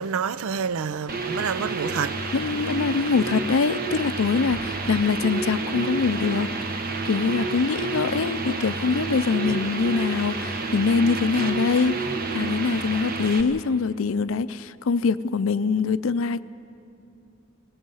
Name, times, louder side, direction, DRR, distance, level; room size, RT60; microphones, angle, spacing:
voice 1, 0.0-2.4 2.9-3.1 4.9-5.0, right 6 dB, 90° right, 0.5 m, -29 dB
sound 1, 1.1-13.4, right 3 dB, 45° right, 1.1 m, -29 dB
voice 2, 2.3-6.5 7.0-12.0 12.3-16.4, left 4 dB, 70° left, 0.5 m, -24 dB
25.5 x 18.5 x 5.6 m
head